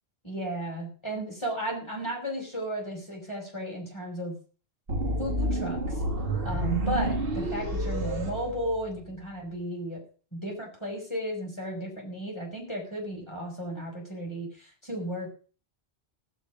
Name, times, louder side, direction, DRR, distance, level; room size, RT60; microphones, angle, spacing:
voice 1, 0.2-4.4 5.2-6.0 6.4-10.0 10.3-15.3, equal, 25° left, 0 dB, 6.1 m, -34 dB
sound 1, 4.9-9.1, right 1 dB, 55° right, 2.1 m, -29 dB
18.5 x 8.1 x 5.1 m, 0.39 s
omnidirectional pair, 1.2 m